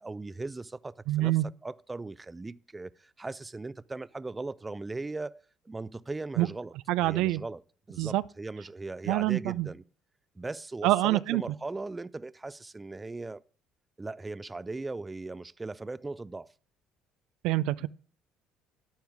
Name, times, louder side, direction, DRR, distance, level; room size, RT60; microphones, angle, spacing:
voice 1, 0.0-1.3 1.6-5.4 5.7-7.6 7.9-9.8 10.4-13.4 14.0-16.5, right 3 dB, 20° right, 0.5 m, -38 dB
voice 2, 1.1-1.5 6.4-6.5 6.9-7.4 8.0-8.2 9.1-9.7 10.8-11.4 17.4-17.9, right 16 dB, 75° right, 0.4 m, -26 dB
11.5 x 9.3 x 3.5 m
supercardioid pair, 75°, 0 cm